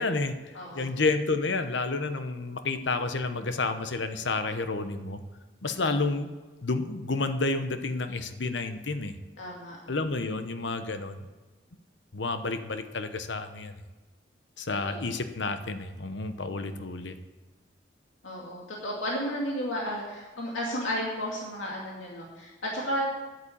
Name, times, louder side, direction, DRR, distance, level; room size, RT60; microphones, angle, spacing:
voice 1, 0.0-0.3 0.7-5.2 5.6-6.3 6.6-9.1 9.9-11.2 12.1-13.7 14.6-17.1, left 3 dB, 70° left, 9 dB, 0.9 m, -30 dB
voice 2, 0.5-0.9 5.7-5.9 9.4-9.8 14.9-15.1 18.2-23.2, equal, 85° left, -3 dB, 2.3 m, -33 dB
9.7 x 8.6 x 8.6 m, 1.2 s
head